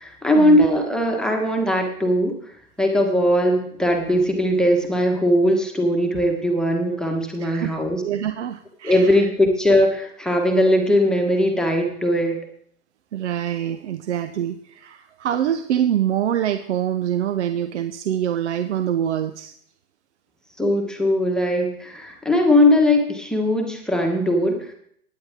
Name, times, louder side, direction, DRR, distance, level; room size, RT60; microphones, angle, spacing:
voice 1, 0.0-2.3 2.8-8.0 8.8-12.4 20.6-24.7, left 1 dB, ahead, 1 dB, 1.3 m, -19 dB
voice 2, 7.4-9.3 13.1-19.5, right 10 dB, 50° right, 9 dB, 0.8 m, -25 dB
17.0 x 10.0 x 3.6 m, 0.67 s
hypercardioid pair, 130°, 46 cm